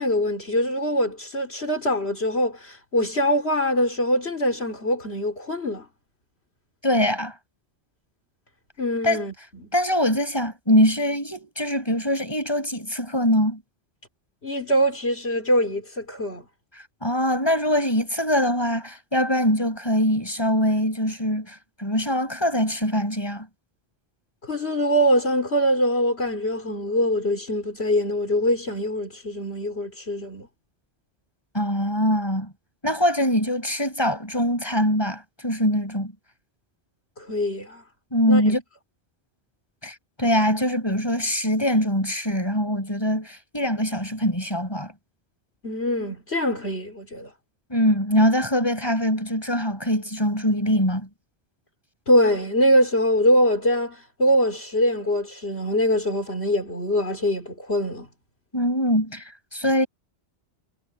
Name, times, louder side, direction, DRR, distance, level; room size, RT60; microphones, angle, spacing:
voice 1, 0.0-5.9 8.8-9.3 9.6-9.7 14.4-16.4 24.4-30.5 37.2-37.8 38.3-38.4 45.6-47.3 52.1-58.1, equal, 70° left, 4.4 m, -23 dB
voice 2, 6.8-7.3 9.0-9.2 9.7-13.6 17.0-23.5 31.5-32.5 32.8-36.1 38.1-38.6 39.8-44.9 47.7-51.1 58.5-59.9, equal, 20° left, 7.7 m, -23 dB
omnidirectional pair, 1.1 m